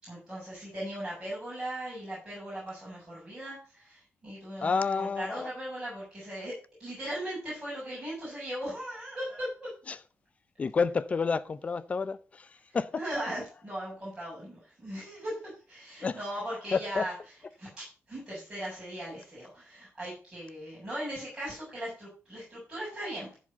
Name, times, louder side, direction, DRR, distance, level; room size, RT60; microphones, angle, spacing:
voice 1, 0.0-9.7 12.7-17.1 17.6-17.7 18.1-23.4, right 1 dB, 15° right, 6.8 m, -38 dB
voice 2, 4.6-5.5 9.9-10.0 10.6-12.9 16.0-16.2 16.7-17.1, left 5 dB, 25° left, 0.5 m, -29 dB
14.5 x 5.1 x 5.5 m
wide cardioid pair, 170°, 5 cm